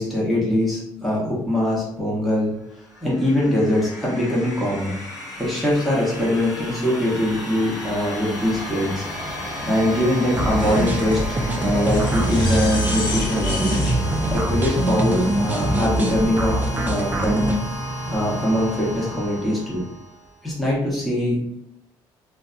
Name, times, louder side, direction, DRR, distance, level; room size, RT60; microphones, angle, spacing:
voice 1, 0.0-2.5 3.0-4.9 5.4-9.0 9.6-11.2 11.6-13.8 14.3-17.4 18.1-19.8 20.4-21.6, left 1 dB, ahead, -7 dB, 0.8 m, -22 dB
sound 1, 2.7-20.4, equal, 80° left, 1.1 m, -32 dB
sound 2, 8.1-15.8, left 2 dB, 55° left, 0.7 m, -34 dB
sound 3, 10.3-17.6, right 1 dB, 20° right, 0.4 m, -23 dB
2.6 x 2.2 x 2.4 m, 0.78 s
cardioid pair, 115°, 9 cm